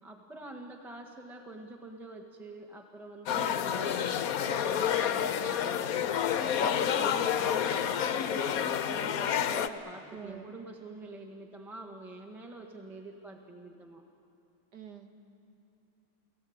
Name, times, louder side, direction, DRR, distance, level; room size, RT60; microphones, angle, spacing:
voice 1, 0.0-6.1 6.6-14.0, right 2 dB, ahead, 2 dB, 1.3 m, -46 dB
sound 1, 3.3-9.7, left 9 dB, 60° left, 0.9 m, -29 dB
voice 2, 10.1-10.5 14.7-15.1, right 8 dB, 55° right, 5 dB, 2.2 m, -46 dB
29.5 x 17.0 x 8.8 m, 2.8 s
omnidirectional pair, 2.3 m